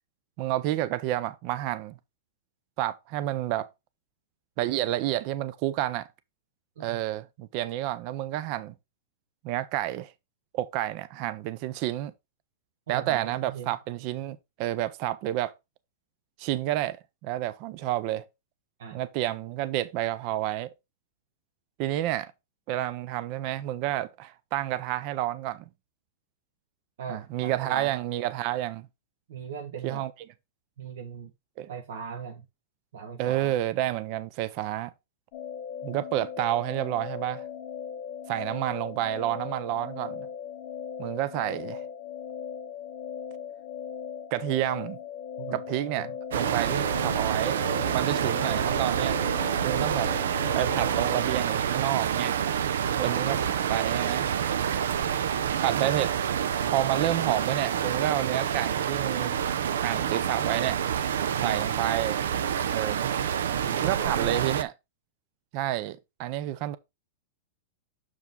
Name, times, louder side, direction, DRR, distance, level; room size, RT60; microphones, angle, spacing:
voice 1, 0.4-1.9 2.8-3.7 4.6-6.1 6.8-8.7 9.4-10.1 10.5-12.1 12.9-15.5 16.4-17.0 17.2-18.3 18.9-20.7 21.8-22.3 22.7-25.6 27.1-28.9 29.8-30.1 31.6-31.7 33.2-34.9 35.8-37.5 38.3-40.3 41.0-41.8 44.3-45.0 45.5-46.1 46.3-47.6 47.9-49.2 49.6-50.1 50.5-52.3 53.0-54.3 55.6-56.1 56.7-59.4 59.7-60.8 61.4-62.2 62.7-63.0 63.7-64.7 65.5-66.8, right 14 dB, 30° right, 0.5 m, -29 dB
voice 2, 12.9-13.8 18.8-19.0 27.0-27.9 29.3-30.0 30.8-31.3 31.7-32.5 32.9-33.6 45.4-45.6 46.0-46.1 52.8-53.3 61.4-61.6 62.8-64.6, right 7 dB, 60° right, 1.2 m, -39 dB
sound 1, 35.3-51.4, left 8 dB, 35° left, 0.9 m, -38 dB
sound 2, 46.3-64.6, right 8 dB, 85° right, 0.6 m, -27 dB
6.8 x 4.9 x 3.7 m
supercardioid pair, 180°, 0 cm